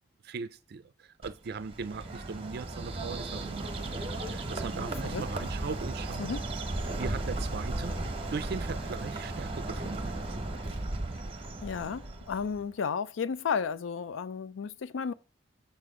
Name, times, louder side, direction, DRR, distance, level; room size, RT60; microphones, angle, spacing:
voice 1, 0.2-6.3 7.0-8.0 8.3-10.1, right 5 dB, 55° right, 0.4 m, -39 dB
Bird, 1.2-12.6, right 2 dB, 30° right, 1.0 m, -35 dB
voice 2, 4.8-5.2 6.2-6.4 11.6-15.1, left 6 dB, 85° left, 0.4 m, -33 dB
7.0 x 6.8 x 3.6 m
head